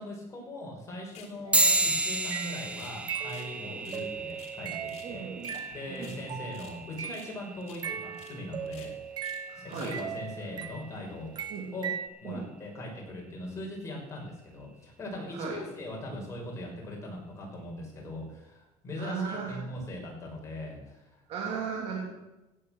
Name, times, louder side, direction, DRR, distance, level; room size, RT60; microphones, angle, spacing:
voice 1, 0.0-5.2 5.7-8.9 9.5-11.3 11.7-11.9 12.2-21.2, left 1 dB, 25° left, -1 dB, 5.7 m, -40 dB
sound 1, 1.1-1.3 1.7-3.0 3.3-3.5 3.8-5.1 5.4-5.7 5.9-6.8 7.1-7.4 7.6-7.8 8.1-8.3 8.7-9.4 9.7-10.0, left 7 dB, 60° left, 3.0 m, -51 dB
sound 2, 1.5-11.4, right 2 dB, 10° right, 1.4 m, -33 dB
sound 3, 1.5-7.4 7.8-11.0 11.4-12.1, right 8 dB, 35° right, 0.9 m, -39 dB
voice 2, 5.0-5.6 5.9-6.2 9.5-9.9 11.5-11.7 12.2-12.4 15.3-15.6 19.0-19.6 21.3-22.0, right 6 dB, 60° right, -2 dB, 3.3 m, -36 dB
16.5 x 9.0 x 6.6 m, 1.0 s
cardioid pair, 135°, 12 cm